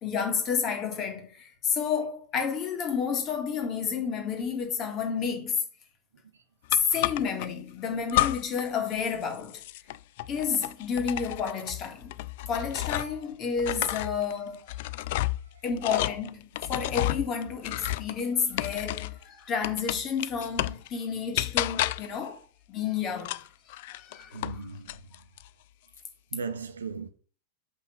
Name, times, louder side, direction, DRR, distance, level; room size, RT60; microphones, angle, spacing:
voice 1, 0.0-5.6 6.7-9.6 10.3-12.1 12.5-14.7 15.6-22.4 22.7-23.4 23.9-24.6, left 6 dB, 35° left, 2.0 m, -30 dB
sound 1, 6.7-7.5 8.1-8.7 9.0-13.2 13.6-19.2 19.6-20.9 21.4-22.2 23.2-24.6 24.9-25.5, left 16 dB, 50° left, 0.3 m, -31 dB
voice 2, 24.3-25.1 26.3-27.1, right 4 dB, 70° right, 1.0 m, -37 dB
6.0 x 5.5 x 6.0 m
figure-of-eight pair, 90°, 0 cm